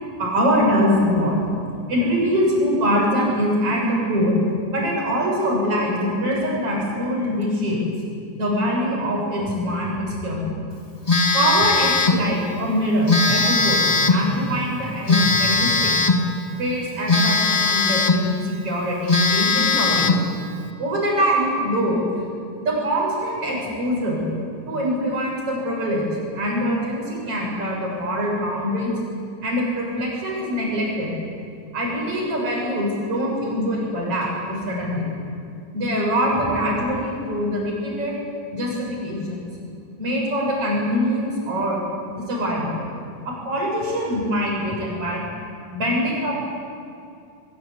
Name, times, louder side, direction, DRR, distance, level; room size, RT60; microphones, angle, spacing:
voice 1, 0.2-1.4 1.9-4.4 4.7-7.8 8.4-10.7 11.3-16.0 16.6-20.3 20.8-22.0 22.6-24.3 24.7-26.1 26.3-28.9 29.4-31.1 31.7-35.0 35.7-38.1 38.5-39.4 40.0-41.8 42.1-42.8 43.3-45.2 45.7-46.3, equal, 50° right, -2 dB, 8.4 m, -23 dB
Telephone, 11.1-12.2 13.1-14.3 15.1-16.3 17.1-18.3 18.7-18.8 19.1-20.3, left 3 dB, 25° left, 0.7 m, -19 dB
23.0 x 22.5 x 8.6 m, 2.4 s
omnidirectional pair, 3.5 m